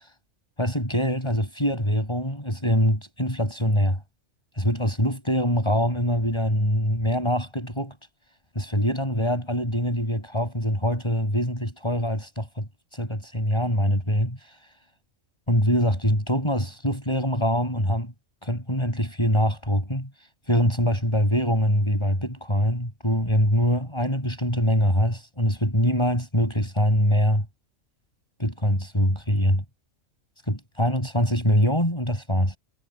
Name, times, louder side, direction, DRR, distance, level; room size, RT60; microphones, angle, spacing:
voice 1, 0.6-4.0 4.6-8.0 8.5-14.4 15.5-18.1 18.4-20.1 20.5-27.4 28.4-29.6 30.5-32.6, equal, 20° left, 8.2 m, -24 dB
omnidirectional pair, 1.4 m